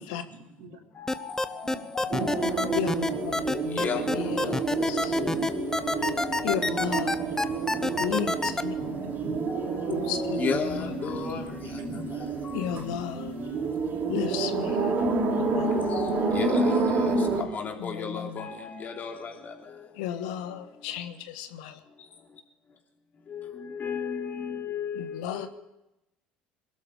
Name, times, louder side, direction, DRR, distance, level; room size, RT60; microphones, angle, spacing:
voice 1, 0.3-0.8 1.7-2.3 3.0-3.5 4.0-4.2 5.2-5.5 7.4-7.8 8.8-9.5 11.2-12.1, right 2 dB, 70° right, 3 dB, 2.9 m, -42 dB
voice 2, 1.0-7.0 7.4-7.6 9.5-9.7 10.0-11.4 11.7-11.8 12.4-12.7 15.7-17.1 17.4-19.7 20.2-20.3 23.3-25.5, left 6 dB, 40° left, 2 dB, 3.3 m, -35 dB
sound 1, 1.1-8.6, left 2 dB, 10° left, 1.1 m, -27 dB
sound 2, 2.1-17.4, right 4 dB, 50° right, 3.9 m, -29 dB
voice 3, 2.7-5.2 6.4-7.1 8.0-8.8 9.9-11.2 12.5-13.3 14.1-14.8 15.6-15.7 17.8-18.5 20.0-21.7 24.9-25.5, left 10 dB, 75° left, 9 dB, 1.4 m, -34 dB
22.0 x 12.5 x 5.0 m, 0.91 s
hypercardioid pair, 65°, 4 cm